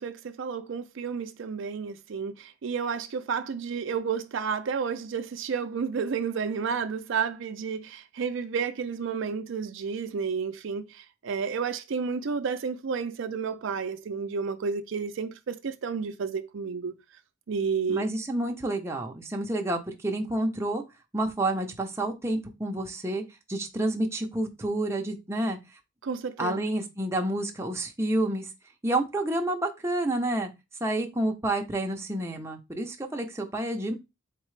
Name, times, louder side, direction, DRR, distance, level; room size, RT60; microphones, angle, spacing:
voice 1, 0.0-16.9 17.5-18.1 26.0-26.6, right 6 dB, 60° right, 0.4 m, -31 dB
voice 2, 17.9-20.8 21.1-23.2 23.5-25.6 26.4-28.5 28.8-30.5 30.8-33.9, right 1 dB, 15° right, 0.6 m, -29 dB
4.1 x 3.6 x 3.2 m
head